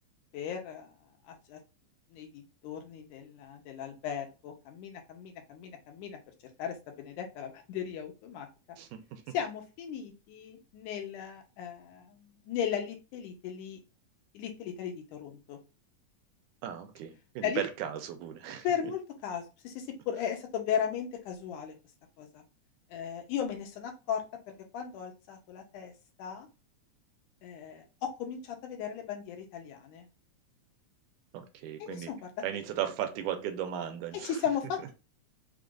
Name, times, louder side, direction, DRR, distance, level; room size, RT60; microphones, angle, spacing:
voice 1, 0.3-1.0 1.3-1.6 2.1-6.2 6.6-8.5 9.3-13.8 14.3-15.6 17.4-17.6 18.6-21.7 22.2-22.4 22.9-25.9 26.2-26.5 27.4-30.1 31.8-32.6 34.1-34.9, left 8 dB, 85° left, 2.4 m, -36 dB
voice 2, 8.8-9.4 16.6-18.7 31.3-32.1 32.4-34.4, right 10 dB, 80° right, 2.2 m, -36 dB
5.5 x 2.5 x 3.8 m
omnidirectional pair, 3.6 m